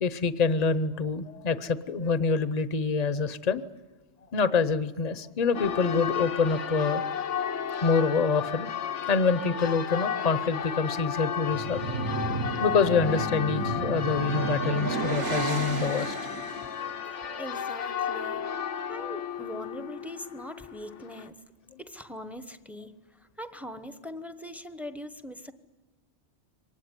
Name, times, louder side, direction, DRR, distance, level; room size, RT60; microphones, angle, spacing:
voice 1, 0.0-3.6 4.3-7.0 7.8-8.7 9.1-11.9 12.6-16.1 17.3-17.5, left 5 dB, 40° left, 14 dB, 0.9 m, -26 dB
Church bell, 5.5-21.3, left 8 dB, 90° left, 1.4 m, -33 dB
sound 1, 11.4-16.8, right 3 dB, 50° right, 1.5 m, -32 dB
voice 2, 17.0-18.4 18.9-21.4 21.8-25.5, equal, ahead, 11 dB, 0.9 m, -41 dB
24.0 x 19.5 x 9.7 m, 1.2 s
omnidirectional pair, 1.2 m